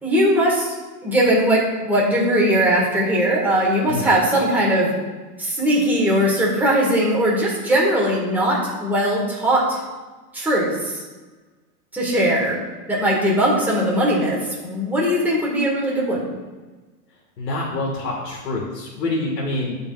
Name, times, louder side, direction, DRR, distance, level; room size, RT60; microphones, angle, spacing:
voice 1, 0.0-0.7 1.0-4.9 5.4-9.8 10.3-11.0 11.9-12.6 12.9-16.2, right 1 dB, 5° right, -5 dB, 1.6 m, -19 dB
voice 2, 17.4-19.7, left 2 dB, 90° left, -2 dB, 1.8 m, -26 dB
12.5 x 5.3 x 2.4 m, 1.3 s
hypercardioid pair, 145°, 48 cm